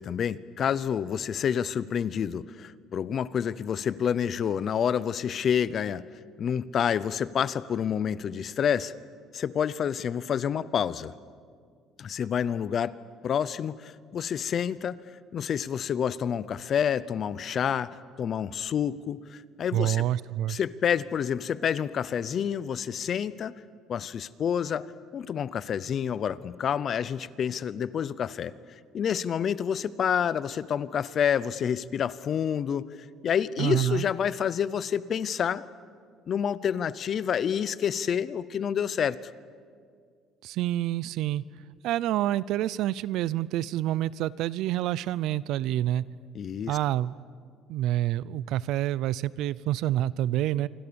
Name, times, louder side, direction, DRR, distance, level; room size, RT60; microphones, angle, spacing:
voice 1, 0.0-6.0 6.4-8.9 9.3-11.1 12.0-13.0 13.2-15.0 15.3-20.1 20.5-23.6 23.9-24.9 25.1-28.6 28.9-32.9 33.2-35.6 36.3-39.2 46.3-46.8, left 8 dB, 35° left, 17 dB, 0.7 m, -28 dB
voice 2, 19.7-20.6 33.6-34.1 40.4-41.4 41.8-46.0 46.7-47.1 47.7-50.7, right 13 dB, 65° right, 20 dB, 0.6 m, -27 dB
27.0 x 25.0 x 7.0 m, 2.1 s
cardioid pair, 160°, 0 cm